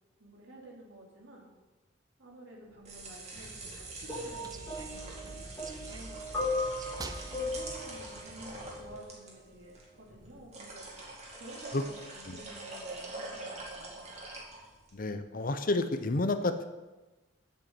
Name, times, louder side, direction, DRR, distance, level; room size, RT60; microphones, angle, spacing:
voice 1, 0.2-1.5 2.2-6.6 7.3-10.9 11.4-14.1, right 1 dB, 75° right, -3 dB, 3.0 m, -51 dB
sound 1, 2.6-15.0, right 2 dB, 35° right, 2.2 m, -45 dB
sound 2, 3.3-9.0, right 2 dB, 20° right, 0.4 m, -47 dB
sound 3, 4.1-9.2 10.1-10.3, left 2 dB, 10° left, 2.5 m, -37 dB
voice 2, 14.9-16.7, left 2 dB, 45° left, 10 dB, 0.7 m, -30 dB
7.6 x 7.2 x 7.8 m, 1.1 s
head